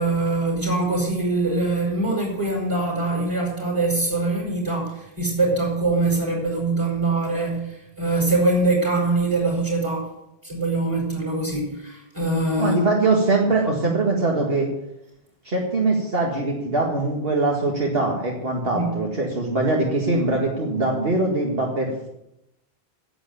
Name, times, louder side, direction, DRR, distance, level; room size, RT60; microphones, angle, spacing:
voice 1, 0.0-10.1 10.4-12.8 18.7-19.0, right 2 dB, 30° right, -1 dB, 5.4 m, -23 dB
voice 2, 12.6-14.7 15.4-22.1, right 2 dB, 70° right, -1 dB, 2.1 m, -22 dB
11.0 x 8.1 x 9.4 m, 0.86 s
omnidirectional pair, 1.0 m